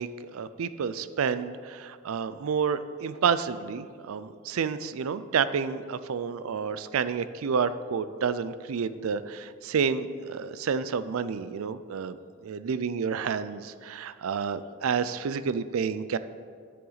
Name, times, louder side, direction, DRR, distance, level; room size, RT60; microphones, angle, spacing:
voice 1, 0.0-12.2 12.4-16.2, right 6 dB, 85° right, 14 dB, 0.4 m, -29 dB
10.0 x 7.7 x 4.0 m, 2.1 s
head